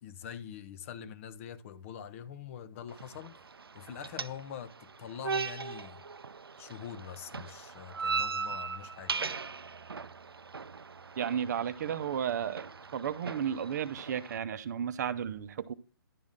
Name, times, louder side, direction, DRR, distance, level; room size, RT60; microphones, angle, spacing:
voice 1, 0.0-3.4 3.7-6.0 6.6-9.3, left 9 dB, 35° left, 0.7 m, -44 dB
sound 1, 2.9-14.4, right 5 dB, 85° right, 0.5 m, -39 dB
voice 2, 11.2-15.7, right 8 dB, 50° right, 0.7 m, -33 dB
11.0 x 6.2 x 3.7 m
figure-of-eight pair, 135°, 12 cm